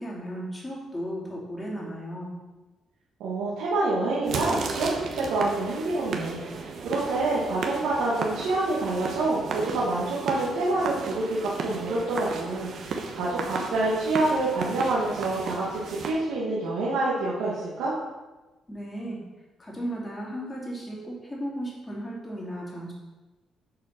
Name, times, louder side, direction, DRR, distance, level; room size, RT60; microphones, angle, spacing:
voice 1, 0.0-2.3 18.7-19.3 19.6-22.9, equal, 20° left, -4 dB, 2.8 m, -35 dB
voice 2, 3.2-17.9, right 2 dB, 90° right, -7 dB, 1.6 m, -27 dB
sound 1, 4.2-16.1, right 4 dB, 65° right, 1.1 m, -34 dB
7.6 x 4.2 x 5.8 m, 1.2 s
cardioid pair, 90°, 0 cm